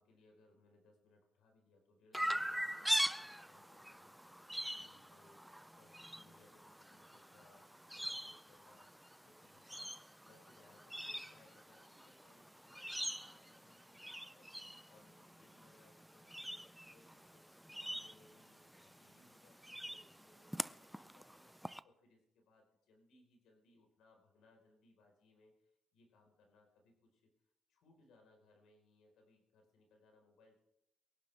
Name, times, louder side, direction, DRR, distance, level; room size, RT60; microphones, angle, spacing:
voice 1, 0.0-4.4 4.7-17.5 17.8-27.3 27.7-30.6, left 2 dB, 80° left, 2 dB, 4.4 m, -69 dB
Chirp tweet, 2.1-21.8, equal, 5° right, 0.5 m, -44 dB
23.5 x 11.5 x 3.4 m, 0.79 s
cardioid pair, 90°, 0 cm